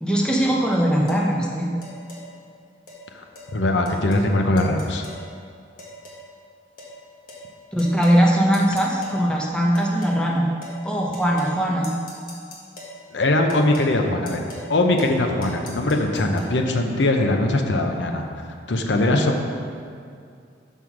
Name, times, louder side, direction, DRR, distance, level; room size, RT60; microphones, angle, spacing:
voice 1, 0.0-1.8 7.7-10.5 10.8-12.0, equal, 5° left, -2 dB, 0.8 m, -20 dB
sound 1, 1.1-1.3 1.8-2.2 2.9-3.0 3.4-3.5 3.9-4.3 4.6-5.2 5.8-6.3 6.8-6.9 7.3-7.5 7.8-8.2 8.5-9.2 9.7-10.2 10.6-10.8 11.1-11.6 11.8-13.0 13.5-13.9 14.3-14.7 15.0-15.2 15.4-16.5, left 2 dB, 50° left, 1.5 m, -41 dB
voice 2, 3.5-5.0 13.1-14.4 14.7-18.3 18.7-19.4, left 2 dB, 85° left, 4 dB, 0.7 m, -21 dB
6.4 x 5.6 x 5.9 m, 2.3 s
head